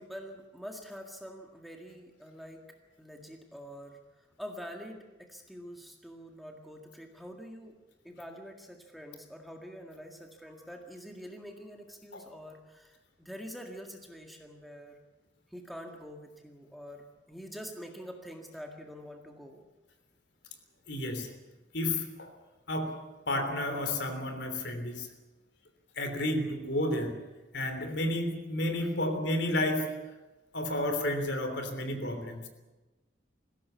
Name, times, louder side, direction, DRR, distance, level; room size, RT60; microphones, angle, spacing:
voice 1, 0.0-2.6 3.0-4.0 4.4-7.8 8.0-15.0 15.5-19.6 26.2-26.5 27.8-28.1 28.8-28.9, equal, ahead, 2 dB, 1.9 m, -46 dB
voice 2, 20.9-21.3 21.7-22.3 22.7-22.9 23.3-25.1 26.0-27.1 27.5-29.9 30.5-32.4, left 1 dB, 65° left, 6 dB, 3.3 m, -31 dB
20.0 x 16.5 x 8.3 m, 1.1 s
head